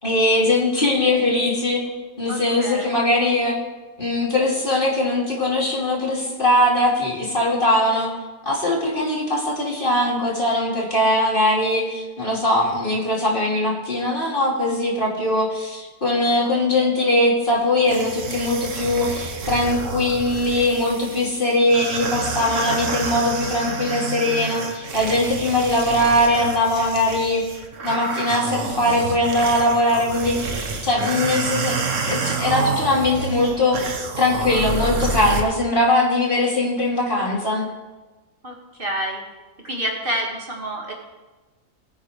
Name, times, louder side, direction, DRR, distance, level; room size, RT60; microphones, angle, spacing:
voice 1, 0.0-1.8 2.2-3.6 4.0-8.1 8.4-27.4 27.8-31.8 32.0-33.8 34.2-37.6, left 1 dB, 40° left, -4 dB, 2.9 m, -21 dB
voice 2, 2.3-2.9 38.4-38.5 38.8-39.2 39.6-40.9, right 1 dB, 40° right, -2 dB, 2.1 m, -28 dB
sound 1, 17.9-35.4, right 4 dB, 65° right, 1.5 m, -29 dB
20.0 x 9.1 x 3.3 m, 1.2 s
omnidirectional pair, 1.4 m